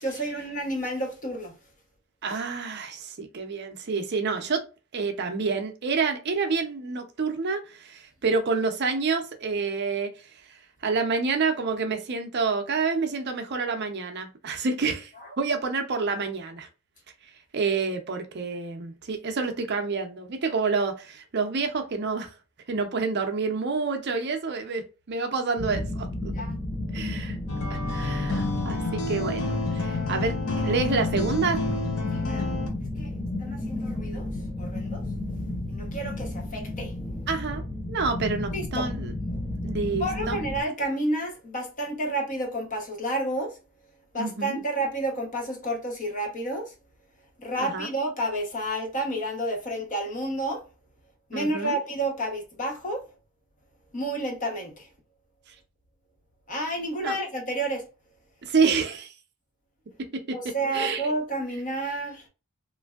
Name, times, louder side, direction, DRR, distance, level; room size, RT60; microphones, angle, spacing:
voice 1, 0.0-1.5 26.4-26.5 32.1-32.6 33.0-33.1 33.4-34.3 34.6-35.0 35.7-36.9 38.5-38.9 40.0-43.6 44.1-46.7 47.4-50.6 51.3-53.1 53.9-54.9 56.5-57.9 60.3-62.2, right 1 dB, 35° left, 0.9 m, -30 dB
voice 2, 2.2-4.6 4.9-15.1 15.4-16.7 17.5-22.3 22.7-26.1 26.9-27.4 27.9-31.6 37.3-37.6 37.9-39.1 39.6-40.4 44.1-44.6 47.6-47.9 51.3-51.8 57.0-57.2 58.4-59.1 60.3-61.1, right 4 dB, 50° right, 0.5 m, -28 dB
sound 1, 25.6-40.6, left 1 dB, 20° left, 0.4 m, -33 dB
sound 2, 27.5-32.7, left 3 dB, 70° left, 0.7 m, -29 dB
3.1 x 2.5 x 2.3 m
head